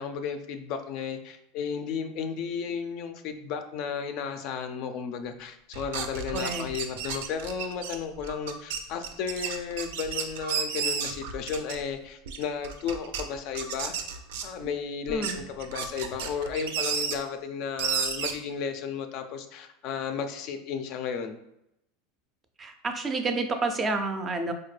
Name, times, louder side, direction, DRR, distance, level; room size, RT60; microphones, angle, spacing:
voice 1, 0.0-13.9 14.4-21.4, left 6 dB, 50° left, 7 dB, 0.4 m, -33 dB
sound 1, 5.7-11.9 12.3-13.2 13.5-14.7 15.1-17.1 17.8-18.3, right 7 dB, 80° right, 0.5 m, -32 dB
voice 2, 6.3-6.7 15.1-15.4 22.6-24.5, right 3 dB, 20° right, 6 dB, 0.4 m, -29 dB
4.2 x 2.1 x 3.2 m, 0.82 s
supercardioid pair, 145°, 0 cm